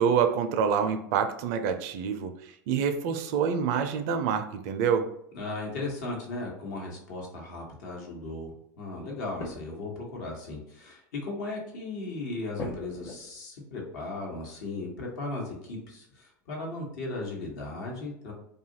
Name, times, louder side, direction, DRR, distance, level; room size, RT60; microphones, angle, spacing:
voice 1, 0.0-2.3 2.7-5.1, right 7 dB, 60° right, 8 dB, 0.4 m, -26 dB
voice 2, 5.3-8.5 8.8-18.3, left 2 dB, 70° left, -1 dB, 1.0 m, -36 dB
sound 1, 9.4-9.9 10.3-10.4 10.7-10.8 11.3-11.5 12.6-13.5 15.7-15.8 16.1-16.7 17.1-17.2, left 3 dB, 25° left, 0.7 m, -41 dB
2.6 x 2.3 x 2.8 m, 0.71 s
hypercardioid pair, 95°, 10 cm